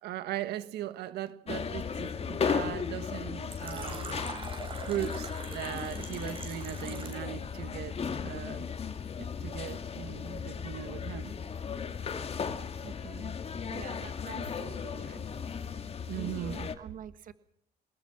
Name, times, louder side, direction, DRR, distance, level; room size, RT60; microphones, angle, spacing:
voice 1, 0.0-4.1 4.9-8.0 8.2-8.7 9.2-11.3 16.1-16.7, right 12 dB, 80° right, 1.6 m, -38 dB
sound 1, 1.5-16.8, left 6 dB, 35° left, 2.2 m, -36 dB
Fill (with liquid), 3.5-7.3, right 4 dB, 35° right, 8.0 m, -43 dB
voice 2, 12.8-13.4 13.7-15.3 16.1-17.3, right 8 dB, 55° right, 1.6 m, -46 dB
24.0 x 20.5 x 6.0 m
cardioid pair, 110°, 17 cm